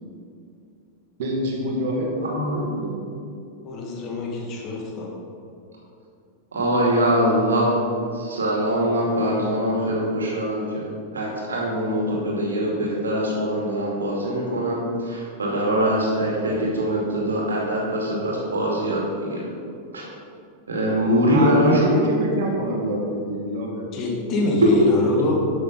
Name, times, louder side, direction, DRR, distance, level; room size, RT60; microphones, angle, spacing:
voice 1, 1.2-3.0 21.3-23.9, right 1 dB, 55° right, 0 dB, 1.9 m, -26 dB
voice 2, 3.6-5.1 23.9-25.3, left 2 dB, 35° left, 0 dB, 1.9 m, -25 dB
voice 3, 6.5-7.7 8.1-10.9 11.1-19.4 19.9-20.0 20.7-22.0, equal, 70° right, -3 dB, 2.4 m, -23 dB
11.5 x 6.9 x 4.0 m, 2.5 s
figure-of-eight pair, 90°, 0 cm